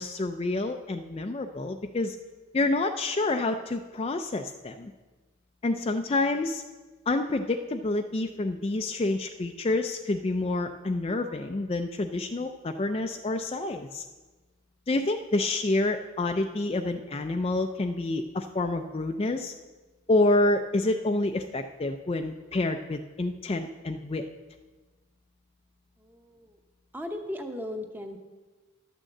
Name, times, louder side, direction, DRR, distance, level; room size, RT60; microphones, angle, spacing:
voice 1, 0.0-2.2 2.5-4.9 5.6-6.6 7.1-14.0 14.9-19.5 20.1-24.2, left 2 dB, 25° left, 5 dB, 0.4 m, -28 dB
voice 2, 26.0-26.6 26.9-28.2, left 1 dB, 10° right, 5 dB, 0.8 m, -37 dB
11.5 x 6.4 x 7.6 m, 1.3 s
head